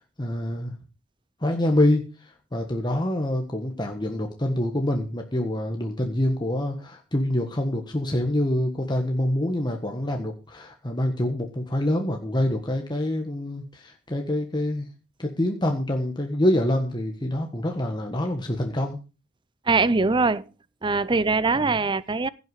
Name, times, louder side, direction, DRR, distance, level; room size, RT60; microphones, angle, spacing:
voice 1, 0.2-0.7 1.4-14.9 15.2-19.0 21.5-21.7, left 1 dB, 20° left, 1.4 m, -26 dB
voice 2, 19.7-20.4 20.8-22.3, right 3 dB, 20° right, 0.5 m, -22 dB
16.5 x 8.2 x 4.9 m
head